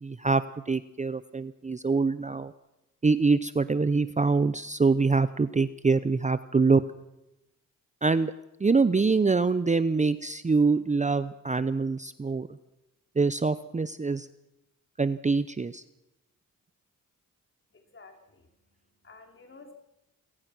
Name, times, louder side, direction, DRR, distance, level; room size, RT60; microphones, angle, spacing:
voice 1, 0.0-2.5 3.0-6.8 8.0-8.3 8.6-12.5 13.2-14.3 15.0-15.8, right 4 dB, 20° right, 14 dB, 0.7 m, -25 dB
voice 2, 17.7-19.7, left 3 dB, 35° left, 4 dB, 4.0 m, -53 dB
27.5 x 16.5 x 6.1 m, 0.91 s
cardioid pair, 70°, 33 cm